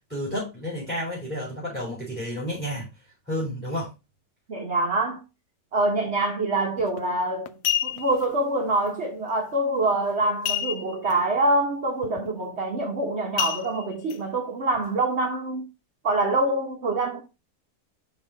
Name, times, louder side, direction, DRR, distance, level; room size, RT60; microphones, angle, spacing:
voice 1, 0.1-2.9 3.3-3.9, equal, 5° right, 3.7 m, -31 dB
voice 2, 4.5-5.2 5.7-7.5 7.8-15.6 16.0-17.2, right 2 dB, 45° right, 1.2 m, -25 dB
sound 1, 6.8-7.0 7.5-8.2 10.4-11.1 11.5-11.6 12.0-12.3 13.4-14.2 14.7-14.8, left 11 dB, 70° left, 0.8 m, -28 dB
5.4 x 4.6 x 3.9 m
omnidirectional pair, 1.9 m